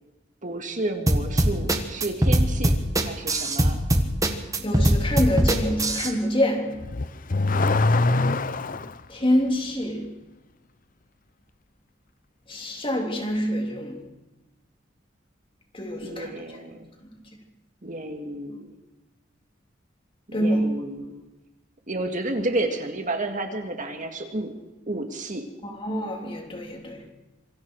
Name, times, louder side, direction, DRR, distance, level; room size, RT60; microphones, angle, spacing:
voice 1, 0.4-3.8 7.5-7.8 16.0-16.9 17.8-18.7 20.3-21.2 21.9-24.5 24.9-25.4, right 2 dB, 40° right, 2.0 m, -31 dB
sound 1, 1.1-6.1, right 1 dB, 15° right, 1.7 m, -21 dB
voice 2, 4.6-6.8 9.1-10.1 12.5-14.0 15.7-16.3 20.3-20.7 25.6-27.0, equal, 25° left, 3.4 m, -26 dB
Car / Accelerating revving vroom, 6.8-9.0, left 3 dB, 40° left, 0.8 m, -23 dB
26.5 x 24.5 x 4.8 m
head